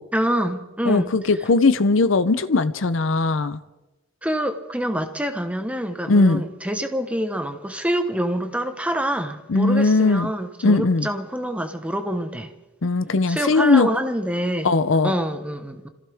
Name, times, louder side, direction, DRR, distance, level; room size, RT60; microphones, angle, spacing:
voice 1, 0.1-1.1 4.2-12.5 13.3-14.7 15.0-15.9, equal, 5° right, 7 dB, 1.1 m, -26 dB
voice 2, 0.9-3.6 6.1-6.4 9.5-10.3 10.6-11.1 12.8-13.9 14.6-15.1, left 3 dB, 70° left, 13 dB, 0.7 m, -19 dB
26.5 x 15.5 x 3.5 m, 1.1 s
head